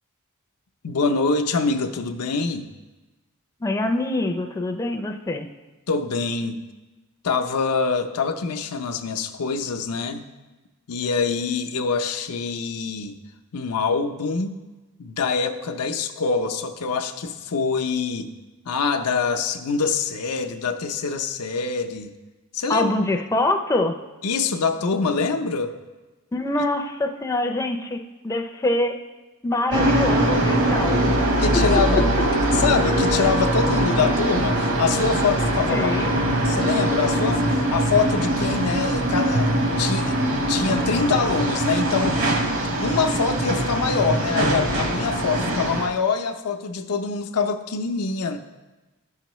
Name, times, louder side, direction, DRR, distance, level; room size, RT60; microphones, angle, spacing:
voice 1, 0.8-2.7 5.9-6.6 7.2-10.3 10.9-13.2 13.5-14.6 15.0-18.3 18.7-22.1 22.5-22.9 24.2-25.8 31.4-32.1 32.4-35.9 36.4-42.3 42.8-48.4, left 5 dB, 90° left, 6 dB, 0.6 m, -25 dB
voice 2, 3.6-5.5 22.7-24.0 26.3-29.0 29.4-31.2 31.5-31.6 35.7-36.1, left 2 dB, 15° left, 4 dB, 0.4 m, -24 dB
sound 1, 29.7-45.9, right 1 dB, 65° right, 1.1 m, -22 dB
13.0 x 5.7 x 3.0 m, 1.2 s
head